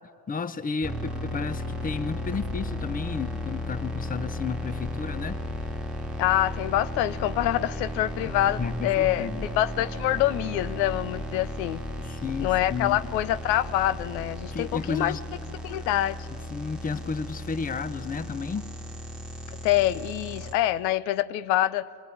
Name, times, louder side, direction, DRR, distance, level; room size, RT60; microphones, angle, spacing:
voice 1, 0.3-5.4 8.3-9.5 12.0-13.0 14.5-15.2 16.5-18.7, left 5 dB, 15° left, 14 dB, 0.8 m, -32 dB
sound 1, 0.8-20.5, left 1 dB, ahead, 1.9 m, -35 dB
sound 2, 1.8-14.5, left 1 dB, 35° left, 2.6 m, -42 dB
voice 2, 6.2-11.8 12.4-15.2 15.6-16.3 19.6-21.9, left 13 dB, 85° left, 16 dB, 0.8 m, -25 dB
23.5 x 20.0 x 8.6 m, 2.6 s
supercardioid pair, 105°, 49 cm